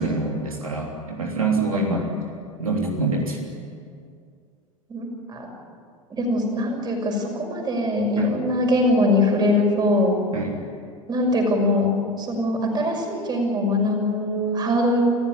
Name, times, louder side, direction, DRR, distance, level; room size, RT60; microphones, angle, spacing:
voice 1, 0.0-2.1 2.6-3.5 8.2-8.4 10.3-10.6, right 3 dB, 80° right, 0 dB, 3.3 m, -25 dB
voice 2, 1.7-2.2 4.9-5.5 6.1-10.2 11.1-11.9 12.2-15.0, left 1 dB, 25° right, 2 dB, 6.3 m, -22 dB
28.0 x 15.0 x 9.9 m, 2.2 s
figure-of-eight pair, 85°, 18 cm